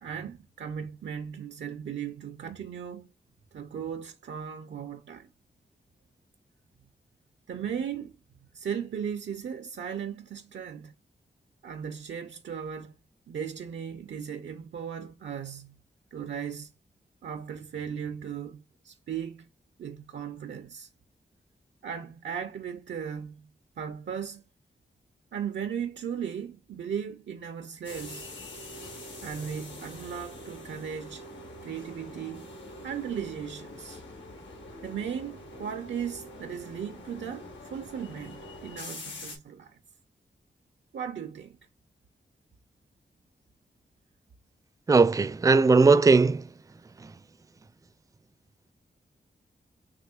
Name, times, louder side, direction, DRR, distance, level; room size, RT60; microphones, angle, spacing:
voice 1, 0.0-3.1 3.5-5.3 7.5-8.2 8.5-10.9 11.6-13.0 13.3-15.8 16.1-16.7 17.2-19.5 19.8-20.9 21.8-23.5 23.8-24.4 25.3-28.3 29.2-31.2 31.6-32.5 32.8-34.0 34.8-39.8 40.9-41.6, right 8 dB, 85° right, 0.5 m, -37 dB
sound 1, 27.8-39.4, left 1 dB, 85° left, 1.6 m, -44 dB
voice 2, 44.9-46.4, right 4 dB, 20° right, 0.3 m, -19 dB
6.4 x 2.7 x 2.3 m
wide cardioid pair, 75°, 19 cm